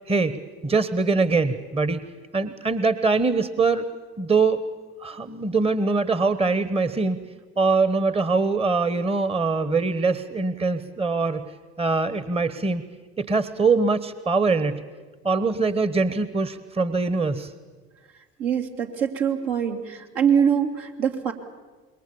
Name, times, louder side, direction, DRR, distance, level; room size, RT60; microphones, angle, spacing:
voice 1, 0.1-2.0 2.3-3.9 4.2-4.6 5.0-7.2 7.6-11.5 11.8-12.8 13.2-14.8 15.2-17.5, right 4 dB, 15° right, 14 dB, 1.2 m, -23 dB
voice 2, 18.4-21.3, right 7 dB, 65° right, 2 dB, 2.9 m, -23 dB
26.5 x 22.0 x 7.0 m, 1.4 s
hypercardioid pair, 60°, 35 cm